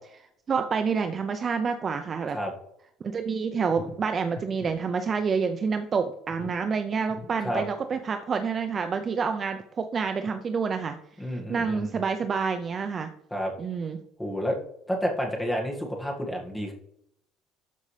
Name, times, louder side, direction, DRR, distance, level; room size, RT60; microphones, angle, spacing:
voice 1, 0.5-2.4 3.0-11.0 11.5-13.1 13.6-14.0, right 5 dB, 25° right, 7 dB, 0.5 m, -28 dB
sound 1, 3.6-4.7 5.0-5.2 5.6-5.7 6.1-6.7 7.1-7.3 7.9-8.0, left 4 dB, 35° left, 1.2 m, -43 dB
voice 2, 11.2-11.9 13.3-13.5 14.2-14.6 14.9-16.7, equal, 5° left, -1 dB, 1.8 m, -30 dB
13.0 x 5.2 x 3.3 m, 0.71 s
cardioid pair, 165°, 0 cm